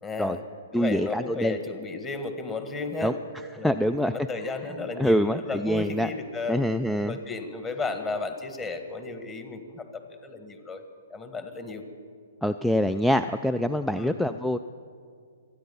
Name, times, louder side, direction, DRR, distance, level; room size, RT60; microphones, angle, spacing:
voice 1, 0.0-0.4 0.7-3.2 3.6-6.6 7.1-10.8 11.1-11.8 13.9-14.2, left 3 dB, 20° left, 7 dB, 1.6 m, -34 dB
voice 2, 0.7-1.6 3.0-3.2 3.6-4.1 5.0-6.1 6.5-7.2 12.4-14.6, equal, 5° left, 11 dB, 0.3 m, -25 dB
25.5 x 9.5 x 5.5 m, 2.2 s
hypercardioid pair, 125°, 0 cm